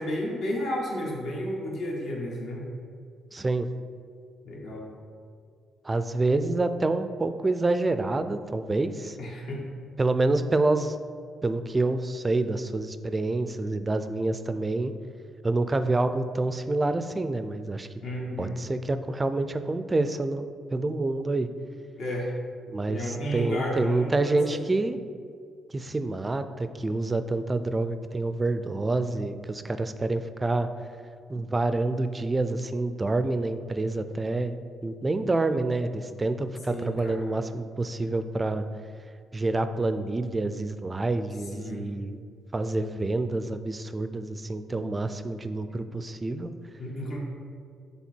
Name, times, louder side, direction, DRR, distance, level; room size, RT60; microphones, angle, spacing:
voice 1, 0.0-2.6 4.4-4.9 9.2-9.7 18.0-18.6 22.0-22.3 22.9-24.6 36.7-37.2 41.5-41.8 46.8-47.2, equal, 70° left, -3 dB, 1.6 m, -32 dB
voice 2, 3.3-3.7 5.8-9.2 10.0-11.0 11.4-14.9 15.4-17.9 18.4-21.5 22.7-25.0 25.7-30.7 31.3-34.6 34.8-38.7 39.3-42.2 42.5-46.5, right 2 dB, 25° right, 10 dB, 0.4 m, -27 dB
7.2 x 3.4 x 4.4 m, 2.1 s
cardioid pair, 90°, 0 cm